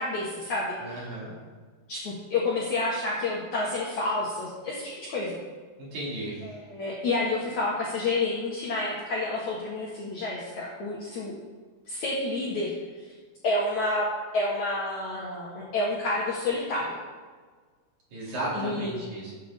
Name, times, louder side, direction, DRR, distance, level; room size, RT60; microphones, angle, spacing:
voice 1, 0.0-1.0 1.9-5.4 6.4-11.3 11.9-12.7 13.4-14.1 14.3-17.0 18.5-19.0, left 2 dB, 55° left, -5 dB, 2.2 m, -29 dB
voice 2, 0.8-1.3 5.8-6.4 18.1-19.3, right 1 dB, 45° right, -7 dB, 4.1 m, -34 dB
16.5 x 8.1 x 3.7 m, 1.5 s
omnidirectional pair, 5.0 m